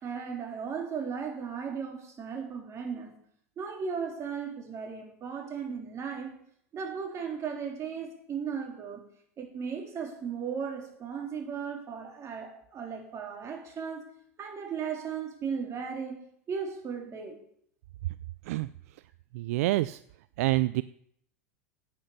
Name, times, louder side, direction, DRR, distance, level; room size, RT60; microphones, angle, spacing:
voice 1, 0.0-3.1 3.6-6.4 6.7-9.0 9.4-14.1 14.4-17.4, right 6 dB, 35° right, 2 dB, 3.5 m, -36 dB
voice 2, 19.3-20.0 20.4-20.8, right 18 dB, 70° right, 16 dB, 0.4 m, -26 dB
10.0 x 8.9 x 6.7 m, 0.67 s
hypercardioid pair, 95°, 8 cm